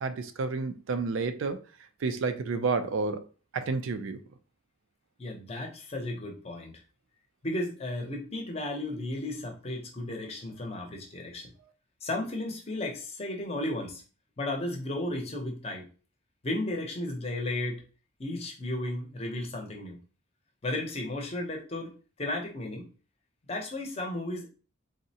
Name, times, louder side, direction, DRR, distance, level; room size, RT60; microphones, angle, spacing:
voice 1, 0.0-1.6 2.0-3.3 3.5-4.2, right 4 dB, 70° right, 0.4 m, -30 dB
voice 2, 5.2-6.8 7.4-11.5 12.0-14.0 14.4-15.9 16.4-17.8 18.2-20.0 20.6-22.9 23.5-24.5, left 1 dB, 30° left, 0.6 m, -34 dB
3.6 x 2.0 x 2.7 m
head